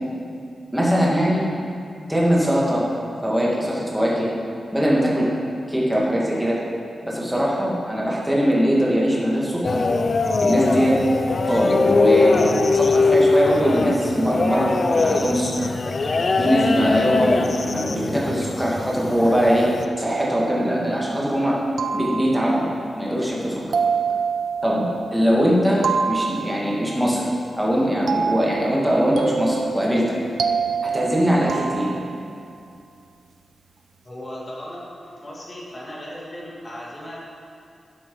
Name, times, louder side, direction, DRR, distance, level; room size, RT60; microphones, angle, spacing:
voice 1, 0.7-1.4 2.1-2.8 3.2-4.3 4.7-5.3 5.7-6.6 7.0-9.8 10.4-11.0 11.5-15.7 16.3-21.6 21.9-22.7 23.0-23.6 24.6-27.3 27.6-30.2 30.8-31.9, equal, 5° right, -5 dB, 2.0 m, -21 dB
sound 1, 9.6-19.8, left 3 dB, 40° left, 0.6 m, -21 dB
sound 2, 20.0-21.1 21.8-22.7 23.7-25.3 25.8-27.0 28.1-32.4, right 6 dB, 65° right, 0.7 m, -27 dB
voice 2, 34.0-37.2, equal, 25° left, -5 dB, 2.6 m, -36 dB
12.5 x 8.0 x 5.4 m, 2.4 s
wide cardioid pair, 170°, 0 cm